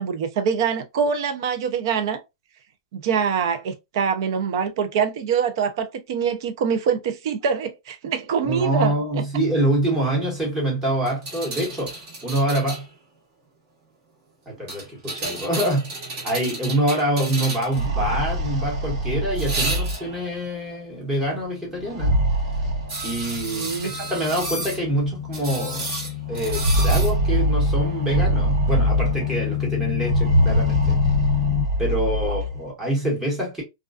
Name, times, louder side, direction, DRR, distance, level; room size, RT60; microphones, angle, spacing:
voice 1, 0.0-2.2 2.9-9.3 23.5-23.9 32.2-32.4, right 6 dB, 50° right, 0.5 m, -24 dB
voice 2, 8.4-12.9 14.5-15.9 16.2-22.2 23.0-25.9 26.3-31.0 31.8-33.6, right 1 dB, 10° right, 1.0 m, -25 dB
sound 1, 11.1-12.9 14.7-17.9 19.4-20.2 22.9-24.8 25.3-27.1 28.7-28.8, right 2 dB, 30° right, 1.0 m, -32 dB
sound 2, 17.6-20.4 21.8-23.5 24.5-24.6 24.9-25.0 26.3-29.4 30.0-32.6, right 1 dB, 75° right, 1.0 m, -23 dB
sound 3, 22.2-31.7, left 12 dB, 40° left, 0.4 m, -29 dB
2.3 x 2.3 x 2.3 m
supercardioid pair, 165°, 3 cm